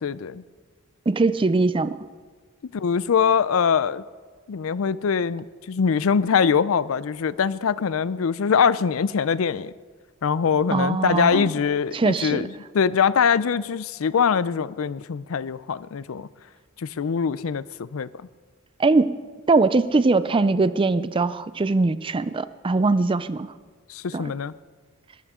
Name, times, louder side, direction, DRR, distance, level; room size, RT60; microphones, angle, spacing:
voice 1, 0.0-0.4 2.7-4.0 4.5-9.7 10.2-16.3 16.8-18.1 23.9-24.5, left 6 dB, 75° left, 0.4 m, -23 dB
voice 2, 1.1-2.0 10.7-11.5 11.9-12.5 18.8-19.2 19.5-23.5 24.1-24.3, right 3 dB, 25° right, 0.4 m, -21 dB
21.5 x 13.5 x 3.7 m
head